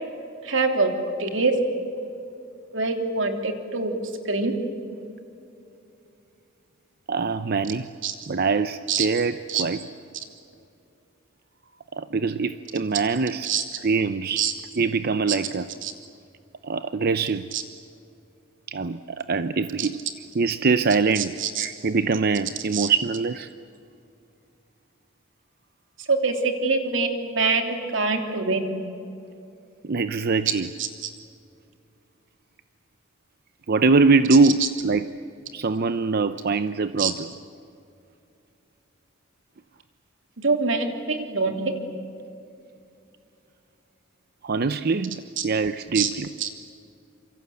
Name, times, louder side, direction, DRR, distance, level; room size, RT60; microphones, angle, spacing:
voice 1, 0.4-0.9 1.2-1.5 2.7-3.9 4.2-4.5 8.0-8.1 8.9-9.1 9.5-9.6 13.4-13.6 14.4-14.5 15.8-15.9 17.5-17.6 19.8-19.9 21.2-21.7 22.7-22.9 26.1-28.7 30.8-30.9 37.0-37.1 40.4-41.8 45.4-45.5 45.9-46.1 46.4-46.5, right 4 dB, 70° right, 4 dB, 3.2 m, -24 dB
voice 2, 7.1-7.9 8.3-9.8 11.9-13.5 13.8-14.5 14.8-15.7 16.6-17.5 18.7-20.0 20.3-23.5 29.8-30.7 33.7-35.1 35.5-37.3 44.4-46.3, right 4 dB, 50° right, 11 dB, 0.6 m, -23 dB
27.5 x 24.5 x 8.3 m, 2.7 s
head